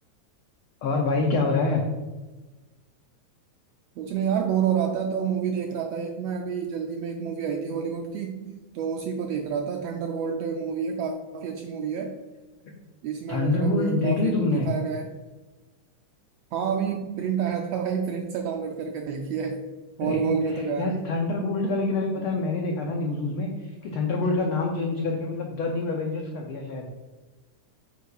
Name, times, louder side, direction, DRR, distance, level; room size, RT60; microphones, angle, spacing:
voice 1, 0.8-1.8 13.3-14.7 20.0-26.9, left 3 dB, 85° left, 1 dB, 1.2 m, -26 dB
voice 2, 4.0-12.1 13.0-15.1 16.5-19.6 20.0-21.0 22.2-22.3, right 7 dB, 85° right, 3 dB, 1.5 m, -29 dB
9.1 x 6.5 x 2.4 m, 1.2 s
omnidirectional pair, 3.4 m